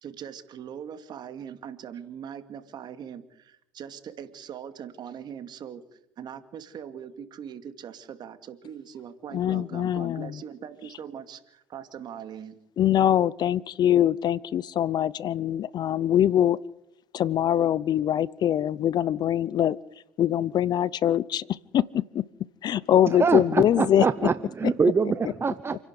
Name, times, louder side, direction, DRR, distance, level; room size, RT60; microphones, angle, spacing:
voice 1, 0.0-12.5, right 8 dB, 50° right, 10 dB, 2.4 m, -41 dB
voice 2, 9.3-10.4 12.8-16.6 17.1-19.8 20.2-22.3 22.6-24.1, left 11 dB, 50° left, 23 dB, 0.7 m, -23 dB
voice 3, 23.2-25.8, right 5 dB, 25° right, 12 dB, 0.8 m, -24 dB
29.0 x 11.0 x 8.2 m, 0.82 s
supercardioid pair, 90°, 9 cm